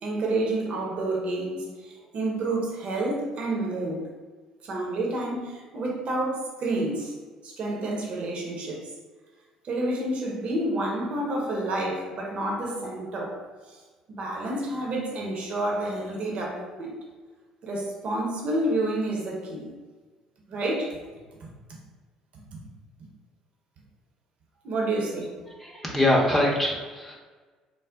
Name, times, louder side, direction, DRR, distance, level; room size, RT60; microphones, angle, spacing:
voice 1, 0.0-4.1 4.6-7.1 7.4-8.9 9.6-13.8 14.1-17.0 17.6-19.7 20.5-21.0 21.4-21.5 22.3-22.4 24.6-25.4, right 2 dB, 45° right, -1 dB, 0.7 m, -29 dB
voice 2, 25.6-27.1, left 1 dB, ahead, -4 dB, 0.7 m, -23 dB
3.8 x 2.0 x 3.5 m, 1.4 s
figure-of-eight pair, 50°, 3 cm